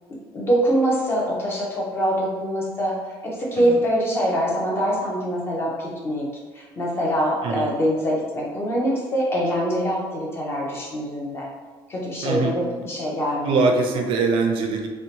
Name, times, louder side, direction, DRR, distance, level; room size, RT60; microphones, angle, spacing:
voice 1, 0.3-2.9 3.2-6.3 6.5-11.5 11.9-13.7, equal, 25° left, -3 dB, 0.6 m, -24 dB
voice 2, 12.2-12.6 13.4-14.9, right 4 dB, 60° right, 3 dB, 0.4 m, -22 dB
2.7 x 2.1 x 2.8 m, 1.4 s
cardioid pair, 155°, 10 cm